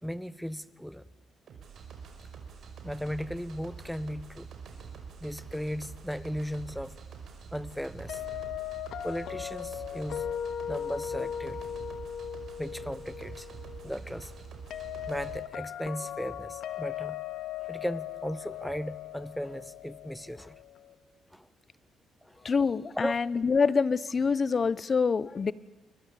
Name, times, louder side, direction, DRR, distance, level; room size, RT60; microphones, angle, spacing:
voice 1, 0.0-1.1 2.8-4.5 5.2-7.0 7.5-8.2 9.0-10.2 10.7-11.7 12.6-13.5 13.8-14.3 15.1-17.2 17.6-20.6 21.3-21.5 22.2-22.4 22.9-23.1, equal, ahead, 17 dB, 1.1 m, -36 dB
sound 1, 1.5-15.4, right 6 dB, 60° right, 5.7 m, -46 dB
sound 2, 8.1-20.9, left 10 dB, 70° left, 2.1 m, -38 dB
voice 2, 22.4-25.5, left 5 dB, 40° left, 19 dB, 1.0 m, -26 dB
29.5 x 23.0 x 8.6 m, 1.1 s
cardioid pair, 90°, 0 cm